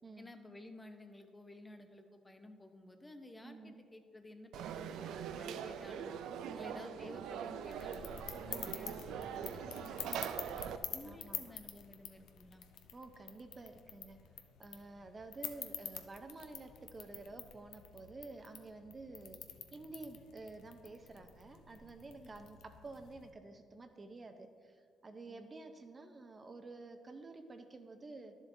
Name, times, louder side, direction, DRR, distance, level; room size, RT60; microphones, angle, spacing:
voice 1, 0.2-6.2 6.6-8.1 8.4-12.6 22.2-22.5 25.2-25.5, left 1 dB, 15° left, 6 dB, 0.7 m, -54 dB
voice 2, 3.4-3.7 6.4-6.8 8.5-8.7 11.0-11.5 12.9-14.2 14.6-19.5 19.7-28.4, right 3 dB, 30° right, 6 dB, 0.6 m, -51 dB
Conversation / Crowd, 4.5-10.8, right 8 dB, 85° right, 0.3 m, -42 dB
sound 1, 7.6-23.3, left 9 dB, 85° left, 0.5 m, -48 dB
11.5 x 7.3 x 2.6 m, 2.1 s
cardioid pair, 90°, 0 cm